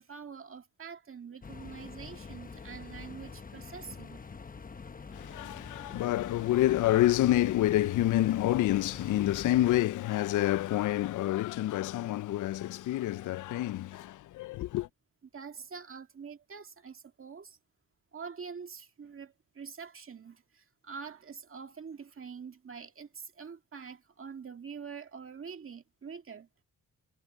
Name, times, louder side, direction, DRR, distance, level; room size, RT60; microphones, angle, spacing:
voice 1, 0.0-4.2 15.3-17.6 18.1-26.5, right 6 dB, 40° right, 2.0 m, -45 dB
sound 1, 1.4-9.8, left 5 dB, 25° left, 1.0 m, -46 dB
voice 2, 5.1-14.9, left 14 dB, 70° left, 0.5 m, -28 dB
cardioid pair, 90°, 33 cm